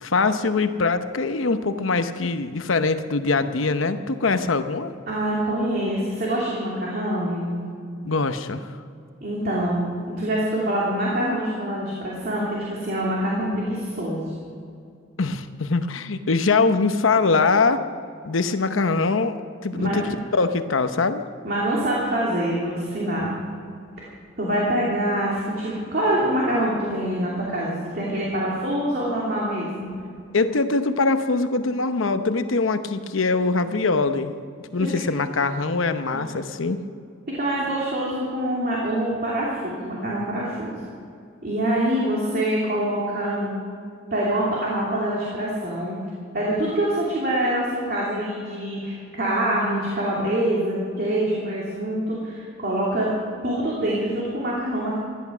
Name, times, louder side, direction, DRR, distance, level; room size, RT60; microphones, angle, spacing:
voice 1, 0.0-4.9 8.0-8.7 15.2-17.8 18.2-20.0 20.3-21.2 30.3-34.3 34.7-36.8, left 3 dB, 85° left, 10 dB, 0.9 m, -22 dB
voice 2, 5.1-7.6 9.2-9.9 10.2-14.3 19.7-20.0 21.4-23.3 24.4-29.9 34.8-34.9 36.1-36.2 37.3-40.8 41.4-43.5 44.1-46.0 46.3-53.1 53.4-55.0, right 1 dB, 50° right, -5 dB, 2.8 m, -25 dB
16.5 x 11.5 x 6.2 m, 2.3 s
head